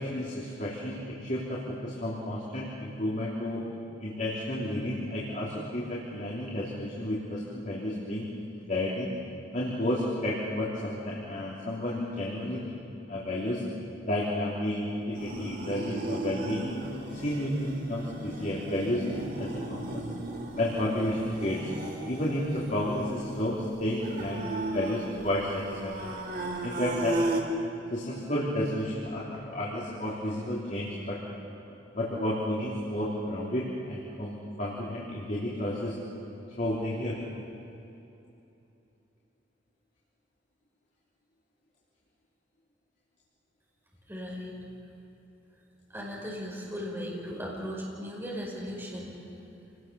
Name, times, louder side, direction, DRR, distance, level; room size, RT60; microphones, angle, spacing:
voice 1, 0.0-3.7 4.0-8.3 8.7-9.1 9.5-12.7 13.1-13.6 14.0-16.7 17.1-20.0 20.6-21.7 22.0-26.0 26.6-27.2 27.9-31.2 31.9-35.9 36.6-37.2, left 1 dB, 45° left, -6 dB, 3.3 m, -31 dB
sound 1, 15.1-27.4, right 1 dB, 55° right, 3.0 m, -35 dB
voice 2, 44.1-44.5 45.9-49.1, equal, 15° right, -4 dB, 5.3 m, -37 dB
27.5 x 19.5 x 7.0 m, 2.9 s
head